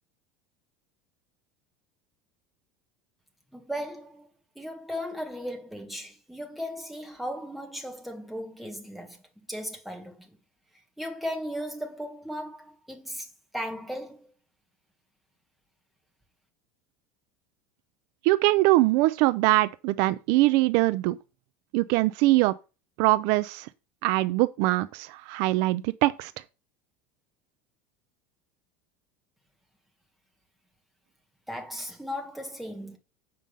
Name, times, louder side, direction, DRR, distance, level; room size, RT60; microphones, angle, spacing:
voice 1, 3.5-4.3 4.5-9.2 9.5-10.3 11.0-13.3 13.5-14.3 31.5-33.0, equal, ahead, 1.6 m, -36 dB
voice 2, 18.2-21.2 21.7-22.5 23.0-23.7 24.0-26.3, right 19 dB, 60° right, 0.4 m, -22 dB
7.6 x 5.3 x 5.4 m
supercardioid pair, 155°, 7 cm